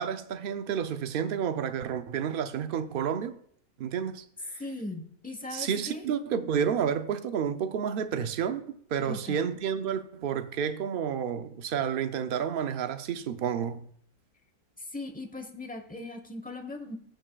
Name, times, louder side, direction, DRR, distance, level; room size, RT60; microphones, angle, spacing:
voice 1, 0.0-3.4 3.8-4.2 5.5-8.6 8.9-13.9, right 8 dB, 75° right, 0.5 m, -30 dB
voice 2, 4.6-6.0 9.0-9.4 14.9-17.0, left 2 dB, 10° left, 0.7 m, -39 dB
15.5 x 7.1 x 2.3 m
omnidirectional pair, 1.6 m